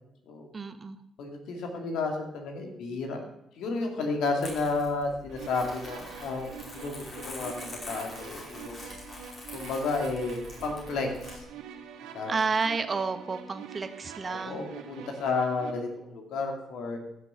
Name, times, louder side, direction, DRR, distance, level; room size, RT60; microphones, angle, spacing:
voice 1, 0.5-1.0 12.3-14.6, right 4 dB, 40° right, 10 dB, 1.2 m, -30 dB
voice 2, 1.2-3.2 3.5-8.8 9.5-11.5 12.1-12.4 14.3-17.0, left 3 dB, 70° left, 3 dB, 2.5 m, -32 dB
Crumpling crinkling, 4.4-11.4, left 2 dB, 45° left, 5.3 m, -44 dB
sound 1, 5.3-15.7, right 7 dB, 75° right, 1.1 m, -45 dB
15.0 x 6.8 x 5.8 m, 0.82 s
hypercardioid pair, 50°, 0 cm